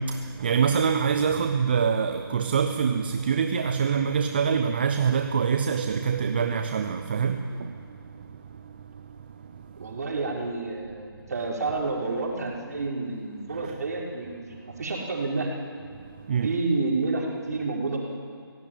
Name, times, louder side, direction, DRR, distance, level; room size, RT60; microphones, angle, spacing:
voice 1, 0.0-9.9 16.0-16.5, right 6 dB, 25° right, 0.7 m, -26 dB
voice 2, 9.8-15.5 16.4-18.0, right 3 dB, 45° right, 5.0 m, -29 dB
24.5 x 16.5 x 9.2 m
figure-of-eight pair, 160°, 13 cm